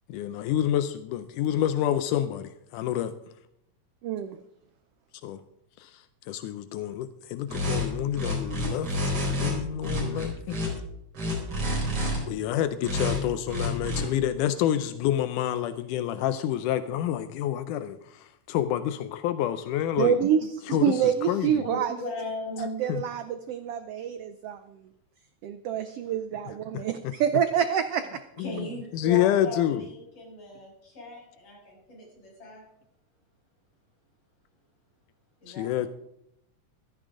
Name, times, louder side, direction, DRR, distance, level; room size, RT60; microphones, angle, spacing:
voice 1, 0.1-3.1 5.2-5.4 5.8-10.6 12.3-20.2 20.7-20.9 21.3-21.7 22.9-23.0 26.7-26.8 28.4-28.7 28.9-29.8 35.5-35.9, left 11 dB, 85° left, 12 dB, 2.2 m, -28 dB
voice 2, 4.0-4.4 20.0-22.0 22.6-24.9 25.4-28.2, right 8 dB, 80° right, 10 dB, 1.3 m, -27 dB
sound 1, 7.5-7.8 8.1-9.5 9.8-10.7 11.1-12.2 12.8-13.2 13.5-14.0, left 1 dB, 50° right, 5.6 m, -28 dB
voice 3, 21.6-22.8 28.4-32.6 35.4-35.9, left 1 dB, 50° left, -3 dB, 7.4 m, -37 dB
15.0 x 14.0 x 3.8 m, 0.76 s
omnidirectional pair, 3.6 m